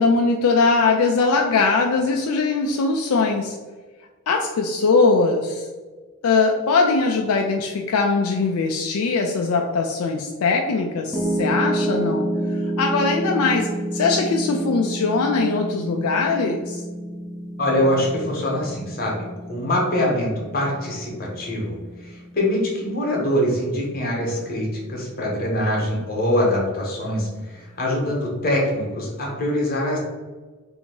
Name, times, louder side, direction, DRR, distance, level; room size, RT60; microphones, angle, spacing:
voice 1, 0.0-3.6 4.3-5.7 6.2-12.3 12.8-16.8, left 4 dB, 75° left, 2 dB, 0.4 m, -21 dB
Piano, 11.1-23.3, right 1 dB, ahead, 0.5 m, -29 dB
voice 2, 17.6-21.7 22.0-30.0, left 1 dB, 40° left, -2 dB, 1.0 m, -24 dB
2.8 x 2.7 x 4.3 m, 1.3 s
head